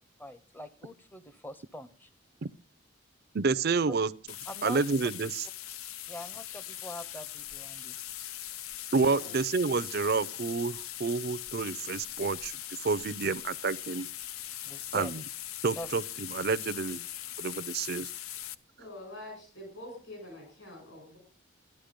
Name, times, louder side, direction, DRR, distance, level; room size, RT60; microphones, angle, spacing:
voice 1, 0.2-2.1 3.9-4.0 4.5-4.9 6.1-8.4 14.6-15.1 15.8-15.9, left 1 dB, 10° left, 0.7 m, -43 dB
voice 2, 3.3-4.1 4.6-5.5 8.9-12.6 12.8-14.1 14.9-15.2 15.6-17.0 17.4-18.1, right 4 dB, 50° right, 0.5 m, -29 dB
sound 1, 4.3-18.5, left 12 dB, 85° left, 0.6 m, -41 dB
voice 3, 9.0-9.3 18.8-21.2, left 1 dB, 60° left, 6.9 m, -45 dB
13.0 x 10.5 x 5.1 m
head